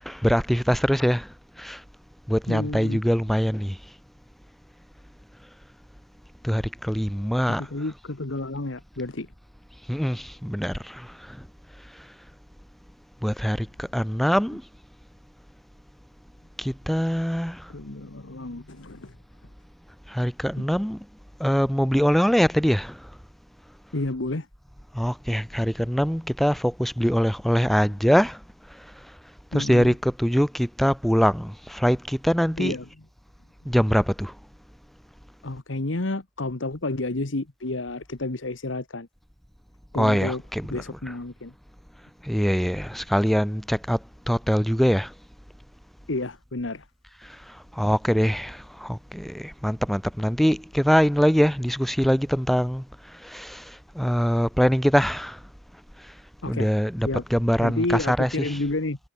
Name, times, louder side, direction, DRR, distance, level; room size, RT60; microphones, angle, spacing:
voice 1, 0.0-1.8 2.3-3.8 6.4-7.6 9.9-11.5 11.9-12.1 13.2-14.6 16.6-17.7 20.1-21.1 21.4-23.1 24.9-28.4 28.7-29.1 29.5-32.8 33.6-34.4 40.0-40.7 42.2-45.1 47.2-55.4 56.0-56.1 56.5-58.6, equal, ahead, 0.7 m, -23 dB
voice 2, 2.5-3.0 7.6-9.3 17.7-19.1 20.6-20.7 23.9-24.5 29.5-29.9 32.6-32.8 35.4-39.1 39.9-40.4 40.7-41.5 46.1-46.8 56.4-56.7 57.0-57.2 57.6-59.0, left 2 dB, 70° left, 1.4 m, -30 dB
head